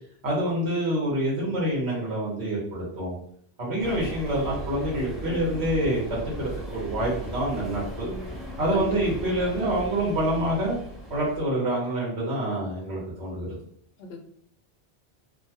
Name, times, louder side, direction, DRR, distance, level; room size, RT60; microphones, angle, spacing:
voice 1, 0.2-3.2 3.6-8.1 8.6-10.8 11.1-13.6, right 1 dB, 85° right, -5 dB, 1.3 m, -27 dB
sound 1, 3.8-11.4, equal, ahead, 0.6 m, -37 dB
voice 2, 8.1-8.3 8.7-9.0 14.0-14.2, left 3 dB, 75° left, 3 dB, 0.8 m, -37 dB
2.7 x 2.2 x 2.8 m, 0.63 s
omnidirectional pair, 1.1 m